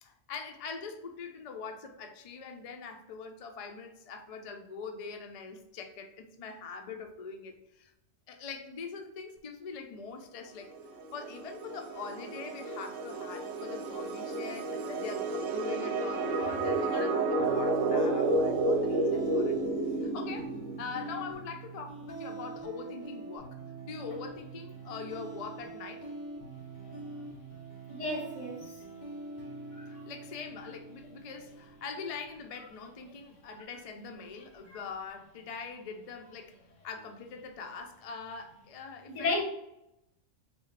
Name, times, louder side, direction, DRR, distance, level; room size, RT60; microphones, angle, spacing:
voice 1, 0.0-7.9 8.3-10.7 11.1-19.5 19.9-20.5 20.8-23.6 23.8-26.1 30.1-36.5 36.8-39.4, left 5 dB, 60° left, 0.3 m, -43 dB
sound 1, 10.8-21.3, right 2 dB, 85° right, 1.0 m, -31 dB
sound 2, 17.4-32.4, right 3 dB, 45° left, 0.9 m, -44 dB
voice 2, 27.9-28.8 29.7-30.0 34.7-34.8 39.1-39.4, left 2 dB, 75° left, 1.5 m, -34 dB
4.1 x 2.4 x 3.2 m
omnidirectional pair, 1.3 m